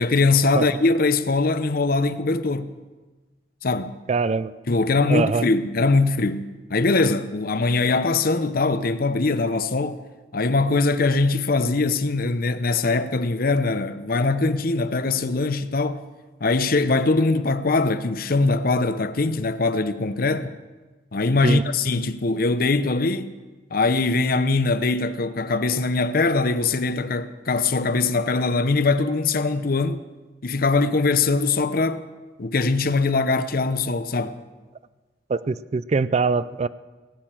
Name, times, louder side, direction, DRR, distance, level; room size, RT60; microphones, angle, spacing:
voice 1, 0.0-2.7 3.6-3.9 4.7-10.0 10.3-16.0 16.4-20.6 21.1-23.4 23.7-30.0 30.4-32.0 32.4-34.4, left 3 dB, 55° left, 0.7 m, -22 dB
voice 2, 4.1-4.5 5.1-5.5 21.4-21.6 35.3-36.7, right 4 dB, 40° right, 0.4 m, -22 dB
18.0 x 8.8 x 7.4 m
head